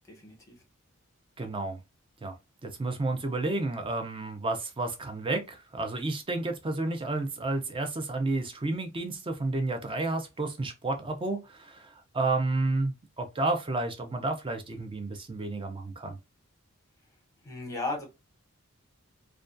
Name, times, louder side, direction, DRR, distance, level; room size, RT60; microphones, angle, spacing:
voice 1, 0.1-0.6 17.4-18.0, left 2 dB, 15° left, 0.8 m, -35 dB
voice 2, 1.4-1.8 2.2-2.3 2.6-16.2, right 2 dB, 25° right, 0.4 m, -31 dB
2.3 x 2.2 x 2.4 m
head